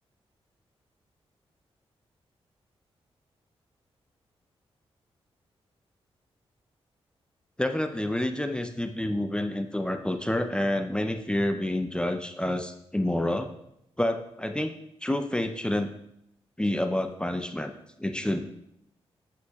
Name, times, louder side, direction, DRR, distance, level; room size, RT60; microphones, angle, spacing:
voice 1, 7.6-13.5 14.0-14.7 15.0-15.9 16.6-17.7 18.0-18.5, left 1 dB, 10° left, 6 dB, 0.6 m, -28 dB
8.2 x 7.9 x 2.4 m, 0.78 s
cardioid pair, 65°, 11 cm